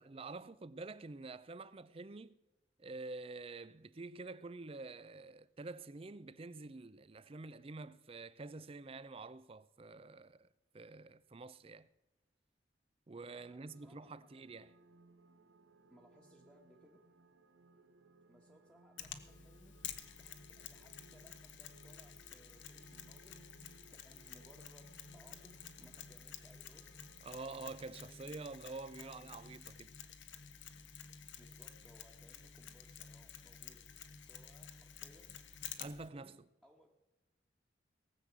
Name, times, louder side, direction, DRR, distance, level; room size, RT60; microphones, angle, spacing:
voice 1, 0.0-2.4 2.8-10.5 10.7-11.9 13.1-14.7 27.2-29.9 35.8-36.4, right 3 dB, 30° right, 0.5 m, -48 dB
sound 1, 13.2-27.5, right 2 dB, 85° right, 0.9 m, -65 dB
voice 2, 13.3-14.3 15.9-17.0 18.3-23.4 23.9-26.8 29.0-29.6 31.4-33.8 34.1-35.4 35.7-36.9, equal, 5° right, 1.3 m, -65 dB
Mechanisms, 19.0-36.1, left 8 dB, 85° left, 1.1 m, -51 dB
18.0 x 7.6 x 7.4 m
head